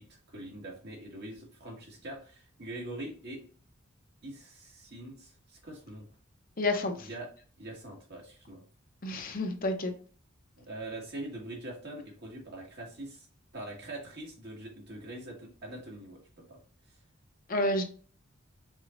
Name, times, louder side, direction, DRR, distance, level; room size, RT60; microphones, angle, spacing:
voice 1, 0.0-3.4 4.2-6.1 7.0-7.3 7.6-8.6 10.6-13.3 13.5-16.6, right 1 dB, 55° right, -1 dB, 1.8 m, -43 dB
voice 2, 6.6-7.1 9.0-9.9 17.5-17.8, left 2 dB, 45° left, 5 dB, 0.7 m, -29 dB
4.9 x 4.0 x 2.5 m, 0.41 s
head